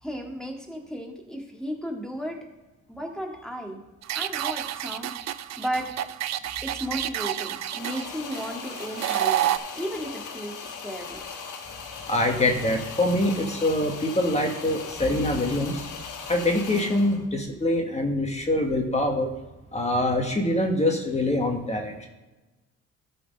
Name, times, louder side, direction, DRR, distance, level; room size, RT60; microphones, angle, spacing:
voice 1, 0.0-2.4 2.9-3.8 4.1-5.1 5.6-5.9 6.6-11.2, equal, ahead, 1 dB, 1.9 m, -34 dB
sound 1, 4.0-9.6, right 13 dB, 65° right, 0.5 m, -29 dB
sound 2, 7.7-17.3, left 5 dB, 80° left, 1.4 m, -39 dB
voice 2, 12.1-15.9 16.3-19.3 19.7-22.1, left 1 dB, 20° left, 2 dB, 1.6 m, -24 dB
13.0 x 4.4 x 5.4 m, 1.1 s
cardioid pair, 90°, 30 cm